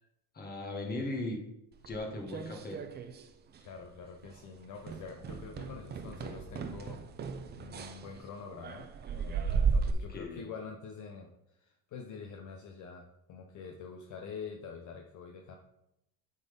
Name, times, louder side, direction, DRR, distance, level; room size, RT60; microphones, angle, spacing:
voice 1, 0.3-1.4 1.8-2.8 10.1-10.4, left 2 dB, 25° left, 1 dB, 1.6 m, -37 dB
sound 1, 1.8-3.3 3.5-3.9 4.2-4.4 4.8-9.9, right 5 dB, 25° right, 0.5 m, -35 dB
voice 2, 3.6-7.0 7.6-15.5, left 5 dB, 45° left, 2 dB, 0.9 m, -46 dB
8.7 x 4.2 x 5.3 m, 0.84 s
cardioid pair, 140°, 41 cm